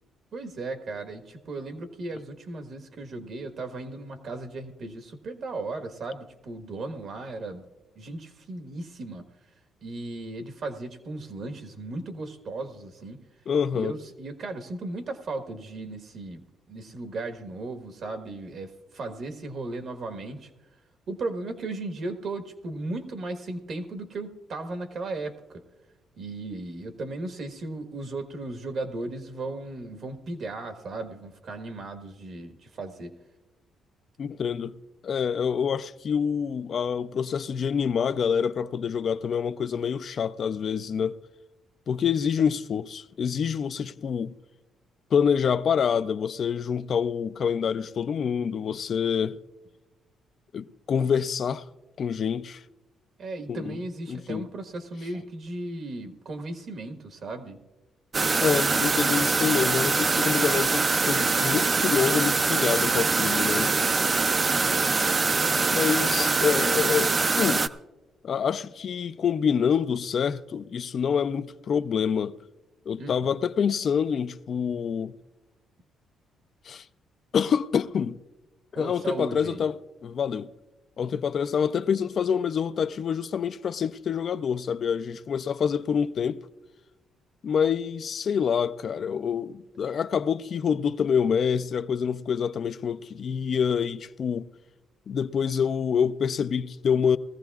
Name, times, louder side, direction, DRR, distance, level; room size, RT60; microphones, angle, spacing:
voice 1, 0.3-7.7 7.9-9.2 9.8-13.2 13.7-16.4 16.7-20.5 21.1-25.6 26.2-33.1 53.2-57.6 64.4-64.7 73.0-73.4 78.7-79.6, right 2 dB, 60° right, 1.3 m, -36 dB
voice 2, 13.5-13.9 34.2-34.8 35.0-41.2 41.9-44.3 45.1-49.4 50.5-51.6 52.0-52.6 53.5-53.8 54.1-54.5 58.4-63.7 65.7-67.6 68.2-72.3 72.9-75.1 76.7-76.8 77.3-78.1 78.7-79.7 80.0-80.5 81.0-86.4 87.4-94.5 95.1-97.2, left 7 dB, 55° left, 0.4 m, -26 dB
sound 1, 58.1-67.7, right 4 dB, 35° right, 0.4 m, -23 dB
20.0 x 14.5 x 2.4 m
cardioid pair, 90°, 0 cm